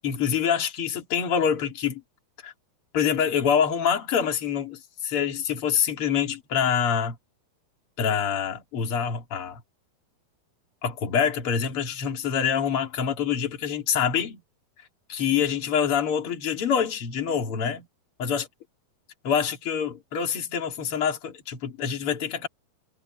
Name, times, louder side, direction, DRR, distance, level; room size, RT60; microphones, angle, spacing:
voice 1, 0.0-2.0 2.4-2.5 2.9-7.2 8.0-9.6 10.8-14.4 15.1-17.9 18.2-18.5 19.2-22.5, left 7 dB, 40° left, 3.0 m, -26 dB
omnidirectional pair, 4.7 m